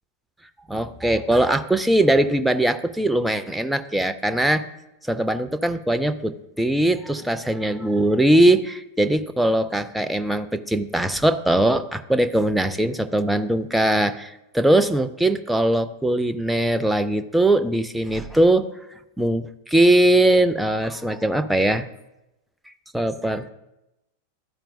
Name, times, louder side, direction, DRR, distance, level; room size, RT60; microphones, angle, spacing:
voice 1, 0.7-4.6 5.0-18.7 19.2-21.9 22.9-23.5, right 1 dB, 5° right, 9 dB, 0.4 m, -21 dB
12.5 x 4.4 x 2.6 m, 0.92 s
figure-of-eight pair, 90°, 0 cm